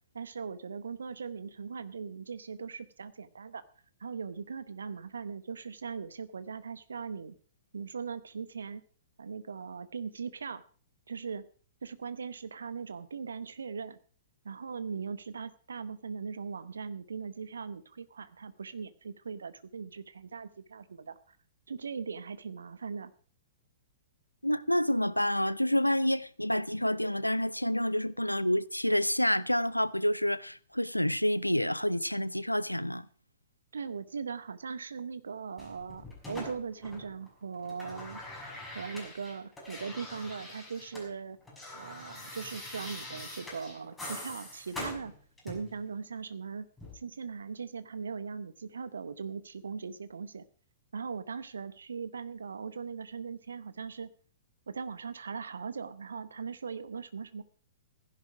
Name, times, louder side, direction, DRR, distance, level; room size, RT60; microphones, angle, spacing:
voice 1, 0.1-3.6 4.0-7.3 7.7-8.8 9.2-10.6 11.1-11.4 11.8-14.0 14.4-21.4 21.7-23.1 33.7-38.2 38.7-41.4 41.7-45.1 45.4-46.7 46.9-50.4 50.9-54.1 54.7-57.4, right 5 dB, 65° right, 0.8 m, -39 dB
voice 2, 24.4-33.1, left 1 dB, 90° left, 0.6 m, -28 dB
sound 1, 35.6-37.3 37.5-41.1 41.3-45.8 46.8-46.9, left 1 dB, 5° left, 6.2 m, -44 dB
16.0 x 11.0 x 4.9 m
figure-of-eight pair, 110°, 0 cm